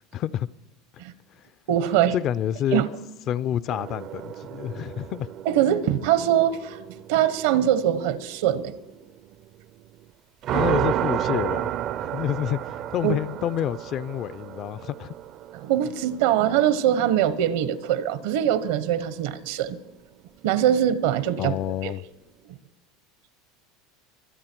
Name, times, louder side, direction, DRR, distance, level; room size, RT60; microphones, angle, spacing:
voice 1, 0.1-0.5 2.1-2.8 3.3-5.3 10.5-11.7 12.0-15.1 21.4-22.0, left 10 dB, 40° left, 0.4 m, -28 dB
voice 2, 1.7-2.2 2.7-2.9 5.5-8.7 13.0-13.1 15.5-19.8 20.4-21.5 21.8-21.9, right 11 dB, 75° right, 1.0 m, -22 dB
sound 1, 3.7-10.0 10.4-18.1, right 11 dB, 45° right, 0.4 m, -32 dB
23.5 x 8.4 x 4.5 m
supercardioid pair, 140°, 0 cm